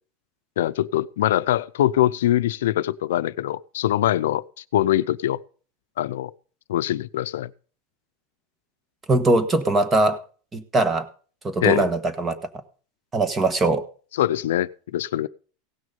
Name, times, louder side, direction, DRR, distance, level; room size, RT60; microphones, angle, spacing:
voice 1, 0.6-5.4 6.0-6.3 6.7-7.5 11.6-11.9 14.2-15.3, left 13 dB, 90° left, 15 dB, 0.5 m, -23 dB
voice 2, 9.1-10.2 10.5-11.1 11.4-12.4 13.1-13.8, right 2 dB, 15° right, 11 dB, 1.3 m, -21 dB
17.0 x 6.3 x 5.3 m, 0.40 s
supercardioid pair, 140°, 0 cm